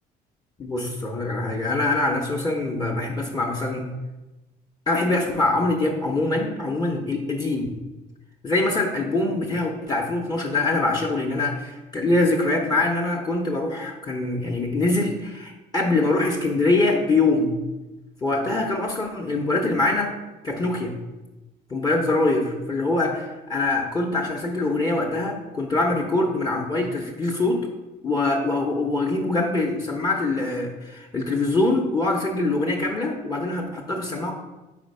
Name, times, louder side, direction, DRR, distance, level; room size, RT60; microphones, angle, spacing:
voice 1, 0.6-3.9 4.9-7.7 8.4-17.5 18.2-20.1 20.4-21.0 21.7-27.6 28.0-34.3, left 2 dB, 25° left, 0 dB, 0.8 m, -24 dB
4.2 x 4.1 x 5.4 m, 1.1 s
cardioid pair, 110°, 17 cm